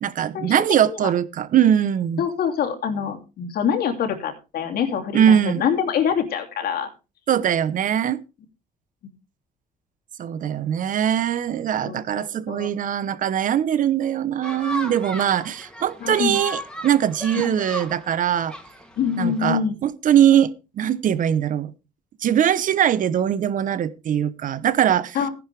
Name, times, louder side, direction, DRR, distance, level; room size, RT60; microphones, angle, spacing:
voice 1, 0.0-2.2 5.1-5.6 7.3-8.2 10.2-18.5 19.2-21.7 22.2-25.2, right 9 dB, 50° right, 0.9 m, -21 dB
voice 2, 2.2-6.9 11.8-12.7 16.0-16.4 17.4-17.6 19.0-19.7 25.1-25.3, left 7 dB, 65° left, 3.0 m, -25 dB
sound 1, 14.4-19.5, equal, 5° left, 2.7 m, -36 dB
15.0 x 11.0 x 3.4 m
cardioid pair, 110°, 17 cm